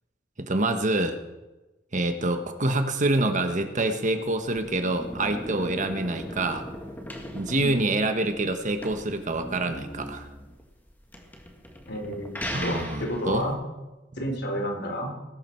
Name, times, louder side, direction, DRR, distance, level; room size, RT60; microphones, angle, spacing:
voice 1, 0.4-1.2 1.9-6.6 7.3-10.3 12.5-13.5, right 2 dB, 45° right, 7 dB, 1.3 m, -26 dB
sound 1, 4.3-13.5, equal, 10° left, 2.1 m, -39 dB
voice 2, 11.9-12.3 12.6-13.6 14.2-15.1, equal, 65° left, 2 dB, 3.8 m, -30 dB
20.5 x 12.0 x 4.6 m, 1.1 s
head